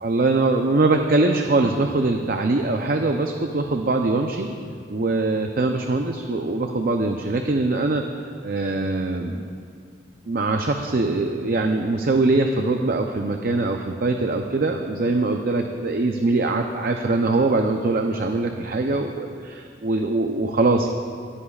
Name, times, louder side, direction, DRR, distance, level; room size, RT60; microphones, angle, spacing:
voice 1, 0.0-4.5 4.9-8.0 8.4-9.4 10.3-20.9, right 2 dB, 55° right, 4 dB, 0.6 m, -22 dB
20.0 x 13.5 x 2.4 m, 2.2 s
head